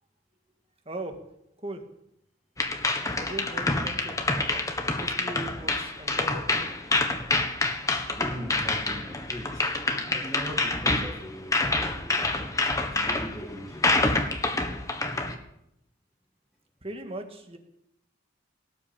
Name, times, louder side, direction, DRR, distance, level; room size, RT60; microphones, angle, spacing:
voice 1, 0.9-1.2 1.6-1.8 3.1-4.2 4.8-6.7 16.8-17.6, right 1 dB, 30° right, 5 dB, 2.0 m, -39 dB
sound 1, 2.6-15.3, left 2 dB, 15° left, 1.5 m, -27 dB
voice 2, 8.1-9.7 10.0-12.2 12.9-14.0, equal, ahead, -4 dB, 2.1 m, -40 dB
18.0 x 8.8 x 8.8 m, 0.78 s
head